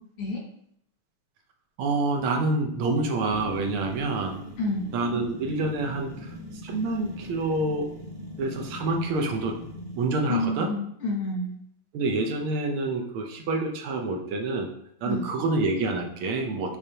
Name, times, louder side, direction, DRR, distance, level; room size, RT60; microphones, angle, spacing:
voice 1, 1.8-4.4 4.9-6.3 6.6-7.9 8.4-9.5 10.0-10.7 11.9-14.7 15.0-16.8, right 3 dB, 75° right, 3 dB, 1.7 m, -27 dB
sound 1, 3.3-10.1, left 1 dB, 50° right, 1.4 m, -41 dB
voice 2, 4.6-4.9 10.3-11.5 15.0-15.3, left 2 dB, 80° left, -3 dB, 2.8 m, -28 dB
6.7 x 4.8 x 2.9 m, 0.70 s
omnidirectional pair, 2.4 m